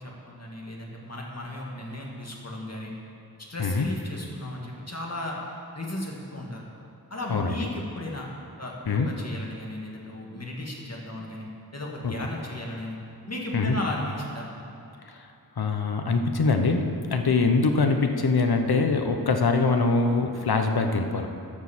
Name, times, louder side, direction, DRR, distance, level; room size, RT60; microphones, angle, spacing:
voice 1, 0.0-2.9 3.5-5.4 5.8-6.6 7.1-8.3 8.6-11.5 11.7-13.0 13.3-14.5, left 1 dB, 40° left, -2 dB, 2.1 m, -35 dB
voice 2, 7.3-7.6 8.9-9.1 12.0-12.1 13.5-13.8 15.6-21.3, left 4 dB, 75° left, 5 dB, 1.0 m, -23 dB
12.0 x 6.4 x 7.3 m, 2.7 s
wide cardioid pair, 65°, 38 cm